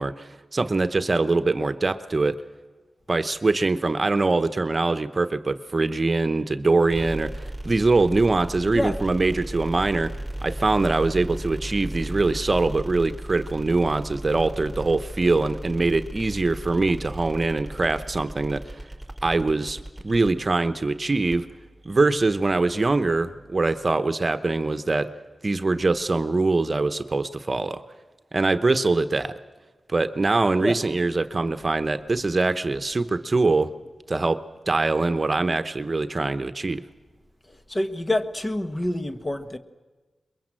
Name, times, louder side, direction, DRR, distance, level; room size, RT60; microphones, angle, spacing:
voice 1, 0.0-2.4 3.1-10.1 10.4-18.8 19.2-21.5 21.8-25.1 25.4-27.8 28.3-29.3 29.9-33.7 34.1-34.4 34.7-36.8, right 3 dB, 40° right, 1.0 m, -23 dB
sound 1, 6.9-23.9, right 1 dB, ahead, 5.7 m, -37 dB
voice 2, 37.5-39.6, left 1 dB, 30° left, 1.4 m, -27 dB
23.0 x 22.0 x 7.6 m
cardioid pair, 65°, 0 cm